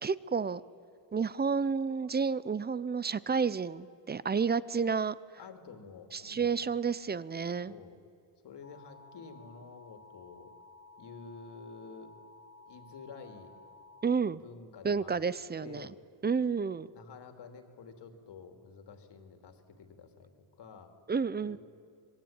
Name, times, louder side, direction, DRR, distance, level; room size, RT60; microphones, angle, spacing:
voice 1, 0.0-0.6 1.1-5.1 6.1-7.7 14.0-14.4 14.8-15.9 16.2-16.9 21.1-21.6, right 5 dB, 20° right, 18 dB, 0.5 m, -30 dB
voice 2, 5.4-6.6 7.7-8.0 8.4-10.5 11.0-12.1 12.7-13.5 14.3-15.9 16.9-20.9 21.4-21.6, left 5 dB, 60° left, 6 dB, 2.9 m, -50 dB
sound 1, 8.6-14.2, left 3 dB, 30° left, 1.9 m, -55 dB
26.5 x 21.0 x 8.8 m, 2.6 s
cardioid pair, 140°, 46 cm